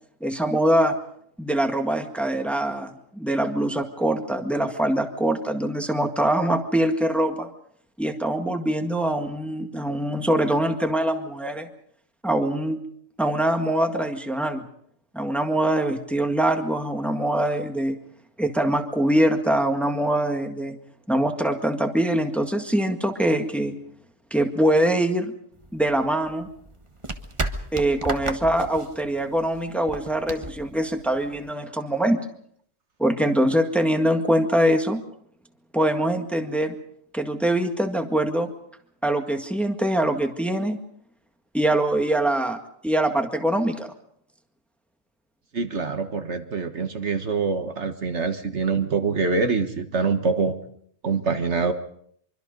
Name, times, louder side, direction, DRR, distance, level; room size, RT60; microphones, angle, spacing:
voice 1, 0.2-1.0 1.4-7.5 8.0-11.7 12.2-12.8 13.2-14.6 15.1-18.0 18.4-20.8 21.1-23.7 24.3-25.3 25.7-26.5 27.7-32.2 33.0-35.0 35.7-36.7 37.1-38.5 39.0-40.8 41.5-42.6 42.8-43.9, right 1 dB, ahead, 5 dB, 1.7 m, -23 dB
sound 1, 25.6-31.5, right 2 dB, 25° right, 1.5 m, -34 dB
voice 2, 45.5-50.6 51.0-51.7, right 4 dB, 60° right, 7 dB, 1.7 m, -25 dB
25.0 x 24.5 x 5.3 m, 0.66 s
omnidirectional pair, 1.3 m